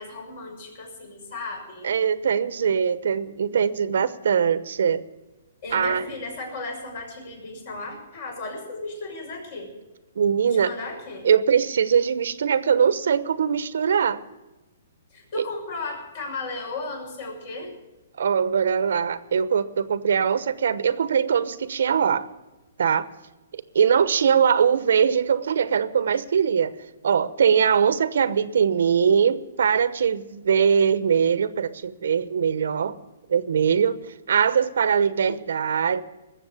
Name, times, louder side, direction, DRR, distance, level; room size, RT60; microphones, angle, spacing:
voice 1, 0.0-1.9 5.6-9.7 10.4-11.3 15.1-17.7, left 3 dB, 50° left, 1 dB, 6.4 m, -35 dB
voice 2, 1.8-5.0 5.7-6.0 10.2-10.7 11.2-14.2 15.3-15.4 18.2-22.3 22.8-23.1 23.5-26.7 27.0-33.0 33.3-36.0, right 7 dB, 75° right, 14 dB, 0.9 m, -21 dB
19.5 x 7.4 x 8.4 m, 1.1 s
hypercardioid pair, 160°, 0 cm